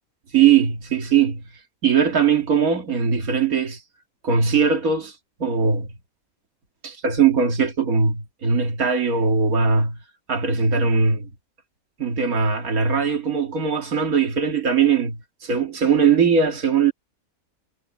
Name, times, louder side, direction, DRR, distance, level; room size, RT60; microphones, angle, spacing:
voice 1, 0.3-1.4 1.8-3.8 4.2-5.1 5.4-5.9 6.8-10.0 10.3-11.3 12.0-16.9, right 6 dB, 85° right, 2.3 m, -20 dB
omnidirectional pair, 1.5 m